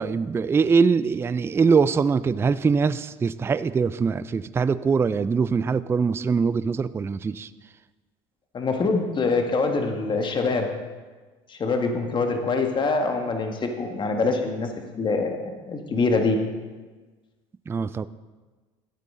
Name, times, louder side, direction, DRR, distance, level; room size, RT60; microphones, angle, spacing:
voice 1, 0.0-7.5 17.7-18.1, right 5 dB, 15° right, 16 dB, 0.3 m, -22 dB
voice 2, 8.5-10.7 11.5-14.7 15.0-16.4, left 3 dB, 35° left, 4 dB, 1.6 m, -24 dB
13.0 x 8.3 x 3.7 m, 1.3 s
supercardioid pair, 85°, 14 cm